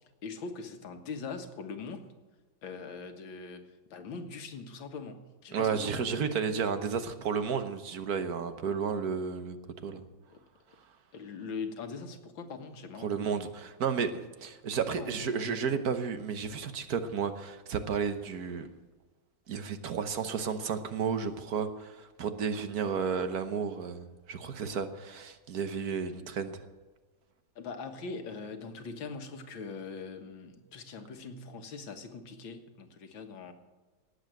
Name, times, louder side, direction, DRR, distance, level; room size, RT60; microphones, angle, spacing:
voice 1, 0.2-2.1 2.6-3.6 3.9-6.2 10.3-10.4 11.1-13.3 14.9-15.5 27.6-33.5, left 4 dB, 90° left, 6 dB, 2.2 m, -42 dB
voice 2, 5.5-9.6 9.8-10.0 13.0-18.7 19.5-26.6, right 6 dB, 55° right, 9 dB, 1.4 m, -32 dB
18.5 x 7.9 x 7.7 m, 1.3 s
omnidirectional pair, 2.1 m